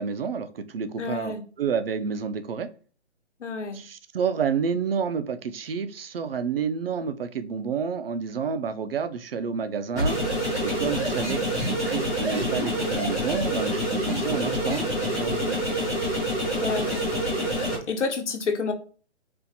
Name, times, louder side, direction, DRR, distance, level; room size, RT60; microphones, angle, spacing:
voice 1, 0.0-2.7 3.7-10.2 10.6-15.7, right 6 dB, 55° right, 11 dB, 0.5 m, -29 dB
voice 2, 1.0-1.4 3.4-3.8 16.6-17.2 17.9-18.7, left 4 dB, 80° left, 5 dB, 1.0 m, -29 dB
sound 1, 9.9-17.7, equal, 5° right, 0.6 m, -27 dB
4.3 x 2.5 x 2.7 m, 0.40 s
hypercardioid pair, 170°, 35 cm